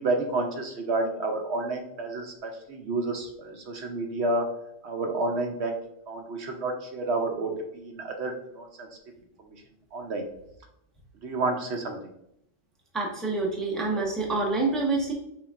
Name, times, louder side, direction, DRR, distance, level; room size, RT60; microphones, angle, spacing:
voice 1, 0.0-4.4 4.8-5.8 6.1-8.9 9.9-10.2 11.2-12.0, right 2 dB, 65° right, 3 dB, 0.9 m, -30 dB
voice 2, 12.9-15.1, right 3 dB, ahead, -2 dB, 0.7 m, -27 dB
5.8 x 3.4 x 2.4 m, 0.78 s
omnidirectional pair, 1.3 m